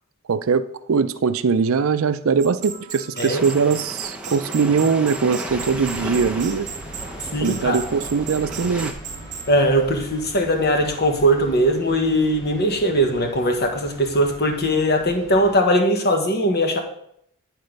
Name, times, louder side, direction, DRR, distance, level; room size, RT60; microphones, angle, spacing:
voice 1, 0.3-6.7 7.4-8.9, right 5 dB, 65° right, 12 dB, 0.5 m, -21 dB
sound 1, 2.4-9.5, right 7 dB, 35° right, 1.1 m, -36 dB
sound 2, 3.3-8.9, right 1 dB, 5° right, 0.8 m, -35 dB
sound 3, 5.5-15.6, right 1 dB, 15° left, 1.7 m, -40 dB
voice 2, 7.3-7.8 9.5-16.8, equal, 50° left, 4 dB, 1.3 m, -20 dB
9.8 x 4.3 x 5.3 m, 0.71 s
head